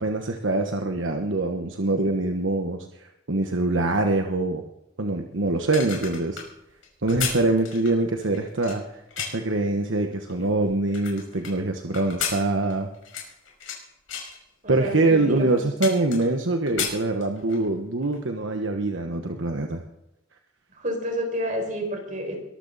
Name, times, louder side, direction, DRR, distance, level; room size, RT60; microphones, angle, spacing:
voice 1, 0.0-4.6 5.0-6.4 7.0-8.8 9.2-12.9 14.7-19.8, right 2 dB, 70° right, 4 dB, 1.2 m, -24 dB
sound 1, 5.5-9.5 10.1-11.5 11.9-13.8 14.1-14.4 15.0-15.1 15.4-16.4 16.7-17.7 18.0-18.2, left 7 dB, 85° left, 5.6 m, -33 dB
voice 2, 14.6-15.6 20.8-22.4, equal, 40° right, 1 dB, 5.5 m, -29 dB
22.5 x 13.5 x 4.1 m, 0.89 s
head